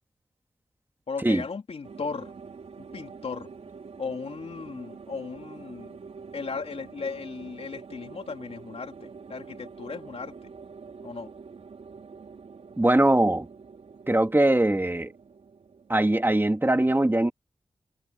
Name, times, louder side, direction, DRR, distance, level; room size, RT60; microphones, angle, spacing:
voice 1, 1.1-2.3 2.8-3.5 4.0-6.0 6.3-10.5 11.0-11.3, left 5 dB, 70° left, 3.6 m, -36 dB
sound 1, 1.8-16.4, right 5 dB, 80° right, 4.3 m, -46 dB
voice 2, 12.8-13.5 14.1-15.1 15.9-17.3, right 1 dB, 20° right, 2.9 m, -21 dB
cardioid pair, 60°, 11 cm